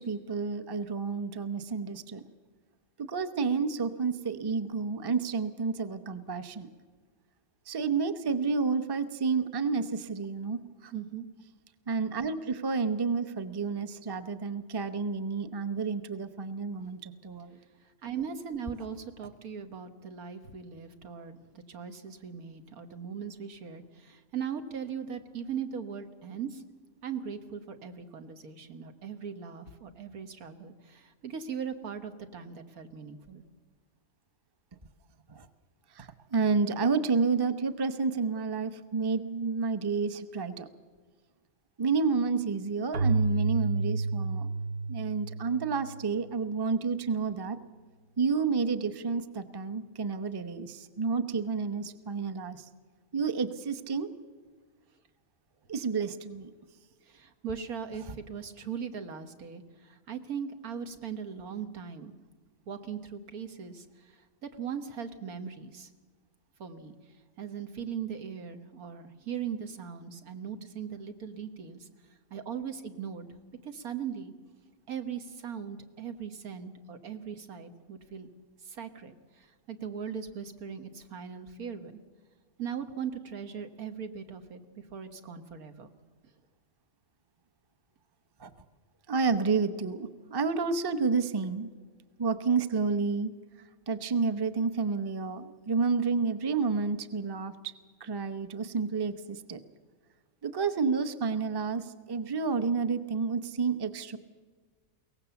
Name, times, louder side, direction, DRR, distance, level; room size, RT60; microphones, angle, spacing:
voice 1, 0.0-2.2 3.0-6.7 7.7-10.9 11.9-17.6 35.3-35.5 35.9-40.7 41.8-44.5 44.9-47.6 48.2-52.7 53.1-54.1 55.7-56.5 88.4-88.5 89.1-91.7 92.2-93.3 93.9-97.5 98.0-99.6 100.4-104.2, right 5 dB, 20° right, 11 dB, 0.7 m, -30 dB
voice 2, 10.9-11.3 18.0-26.6 27.0-33.4 57.0-62.1 62.7-65.9 66.6-66.9 67.4-71.9 72.3-73.3 73.6-74.3 74.9-78.3 78.6-82.0 82.6-85.9, right 7 dB, 85° right, 8 dB, 1.8 m, -39 dB
Keyboard (musical), 42.9-46.5, right 3 dB, 50° right, 1.0 m, -30 dB
22.5 x 18.0 x 7.1 m, 1.5 s
omnidirectional pair, 1.5 m